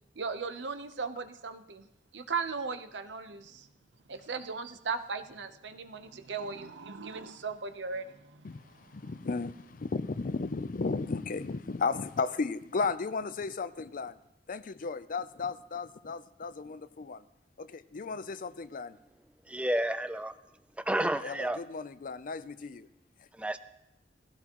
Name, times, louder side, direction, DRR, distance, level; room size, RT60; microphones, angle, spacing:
voice 1, 0.1-1.9 2.1-3.7 4.1-9.1, right 5 dB, 90° right, 0.9 m, -37 dB
voice 2, 8.9-14.2 14.5-17.2 17.6-19.0 21.0-22.9, left 4 dB, 50° left, 0.5 m, -35 dB
voice 3, 19.5-20.3 20.9-21.6 23.3-23.6, right 1 dB, 5° right, 0.5 m, -30 dB
18.5 x 15.5 x 3.0 m
head